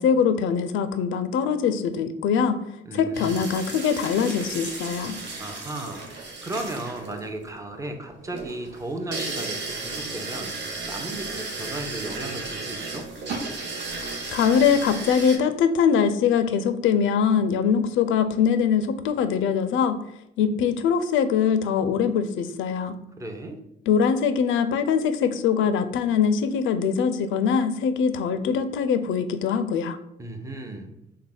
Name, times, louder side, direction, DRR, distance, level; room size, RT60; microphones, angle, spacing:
voice 1, 0.0-2.6 2.9-5.2 14.3-20.0 20.4-23.0 23.9-30.0, left 7 dB, 75° left, 10 dB, 0.4 m, -22 dB
voice 2, 2.9-3.5 5.4-6.0 6.4-10.5 10.9-13.1 23.2-23.6 30.2-31.0, right 1 dB, 15° right, 5 dB, 0.5 m, -35 dB
sound 1, 3.1-15.4, right 3 dB, 65° right, 0.8 m, -34 dB
3.3 x 2.1 x 3.8 m, 0.79 s
cardioid pair, 90°, 20 cm